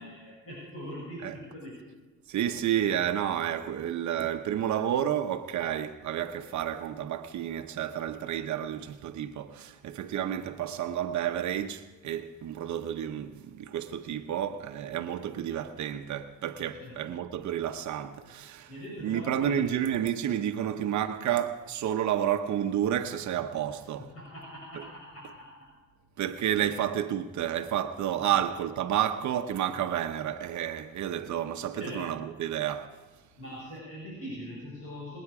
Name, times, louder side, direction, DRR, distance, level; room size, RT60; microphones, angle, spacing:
voice 1, 0.0-1.7 16.6-17.2 18.7-19.8 23.7-25.7 26.3-26.4 28.2-28.5 31.7-32.2 33.4-35.2, equal, 50° left, 6.4 m, -42 dB
voice 2, 2.3-18.7 19.0-24.1 26.2-33.0, right 10 dB, 70° right, 0.9 m, -30 dB
27.5 x 9.5 x 4.9 m
cardioid pair, 90°, 30 cm